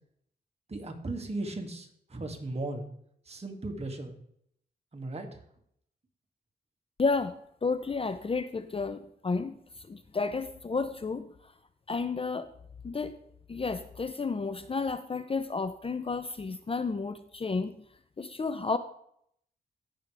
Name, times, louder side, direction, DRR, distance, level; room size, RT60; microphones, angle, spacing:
voice 1, 0.7-2.9 3.3-4.2 4.9-5.3, right 2 dB, 40° right, 2 dB, 2.3 m, -36 dB
voice 2, 7.0-9.6 9.9-11.3 11.9-12.5 12.8-13.2 13.5-17.8 18.2-18.8, left 4 dB, 35° left, 11 dB, 0.6 m, -31 dB
16.5 x 6.3 x 3.4 m, 0.69 s
cardioid pair, 75°, 17 cm